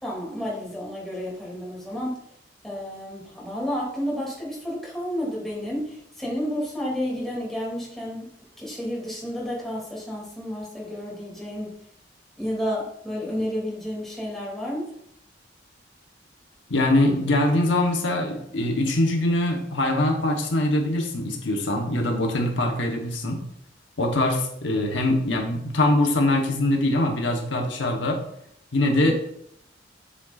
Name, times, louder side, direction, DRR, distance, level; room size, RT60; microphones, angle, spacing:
voice 1, 0.0-2.2 2.6-11.7 12.4-14.9 29.0-29.1, equal, ahead, -5 dB, 2.5 m, -31 dB
voice 2, 16.7-23.4 24.0-28.2 28.7-29.1, left 1 dB, 80° left, 2 dB, 1.0 m, -23 dB
7.5 x 6.8 x 2.4 m, 0.72 s
head